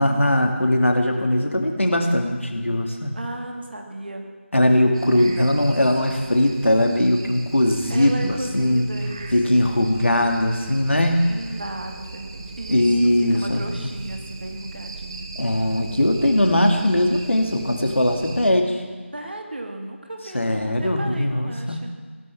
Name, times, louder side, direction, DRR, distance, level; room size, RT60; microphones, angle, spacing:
voice 1, 0.0-3.1 4.5-8.9 9.3-11.2 12.7-13.6 15.4-18.8 20.3-21.8, left 1 dB, 70° left, 3 dB, 2.4 m, -20 dB
voice 2, 3.1-4.4 5.1-5.8 7.9-9.6 11.3-15.3 19.1-21.9, right 1 dB, 50° right, 3 dB, 2.3 m, -35 dB
sound 1, 4.9-18.5, right 3 dB, 25° right, 0.9 m, -39 dB
18.0 x 12.0 x 5.9 m, 1.5 s
figure-of-eight pair, 165°, 7 cm